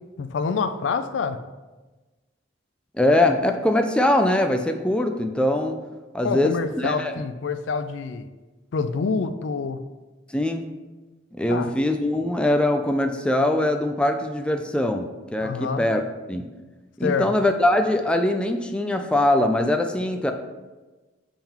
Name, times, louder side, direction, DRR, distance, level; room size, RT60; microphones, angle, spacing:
voice 1, 0.2-1.4 6.2-8.3 8.7-9.8 11.5-11.7 15.4-15.8 17.0-17.3, left 5 dB, 75° left, 11 dB, 0.4 m, -26 dB
voice 2, 2.9-5.8 6.1-7.1 10.3-10.6 11.4-16.0 16.3-16.4 17.0-20.3, left 1 dB, 5° left, 5 dB, 0.4 m, -22 dB
7.0 x 3.8 x 4.4 m, 1.2 s
head